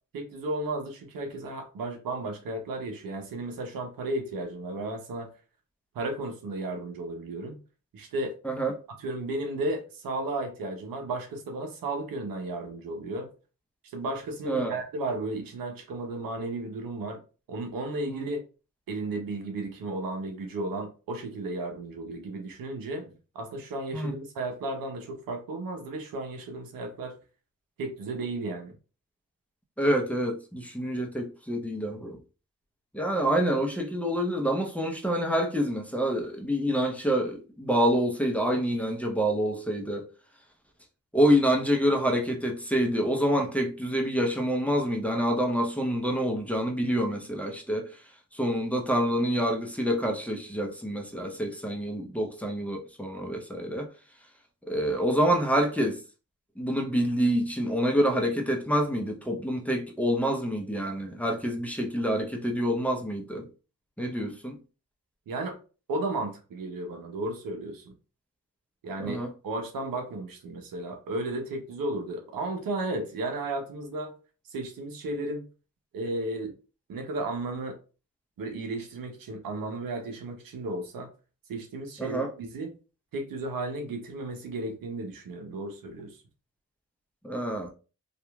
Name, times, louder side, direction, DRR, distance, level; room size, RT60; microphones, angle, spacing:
voice 1, 0.1-5.3 5.9-7.6 7.9-8.4 9.0-13.3 13.8-17.2 17.5-18.4 18.9-27.2 27.8-28.7 65.3-65.6 65.9-67.9 68.8-69.2 69.4-74.1 74.5-75.5 75.9-76.5 76.9-77.8 78.4-81.1 81.5-82.7 83.1-86.2, right 2 dB, 80° right, 0.7 m, -34 dB
voice 2, 14.4-14.8 18.1-18.2 23.9-24.1 29.8-32.2 32.9-40.1 41.1-47.9 48.3-53.9 54.7-56.0 56.6-63.5 64.0-64.6 69.0-69.3 82.0-82.3 87.2-87.7, equal, 5° left, 0.8 m, -27 dB
2.8 x 2.4 x 2.2 m
supercardioid pair, 40°, 34 cm